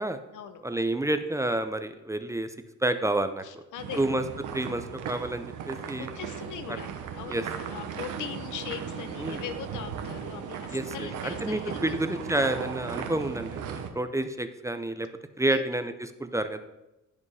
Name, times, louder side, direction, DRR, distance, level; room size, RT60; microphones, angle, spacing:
voice 1, 0.6-2.5 2.8-3.6 4.0-4.2 4.5-6.1 6.7-6.8 7.3-7.4 9.2-9.4 10.7-15.1 15.4-16.6, right 1 dB, 10° right, 9 dB, 0.7 m, -29 dB
voice 2, 3.4-4.0 6.0-12.3 15.4-15.7, left 8 dB, 85° left, 10 dB, 1.0 m, -40 dB
sound 1, 3.8-13.9, right 7 dB, 80° right, 1.2 m, -37 dB
15.0 x 5.3 x 4.9 m, 0.97 s
cardioid pair, 90°, 30 cm